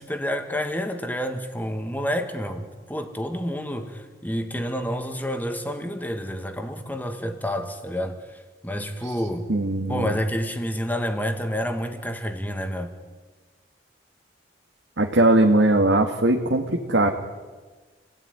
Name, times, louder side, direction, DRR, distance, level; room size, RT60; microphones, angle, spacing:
voice 1, 0.0-9.5 9.9-12.9, equal, 10° left, 2.1 m, -29 dB
voice 2, 9.5-10.2 15.0-17.1, right 2 dB, 80° right, 2.1 m, -20 dB
29.5 x 17.5 x 9.9 m
head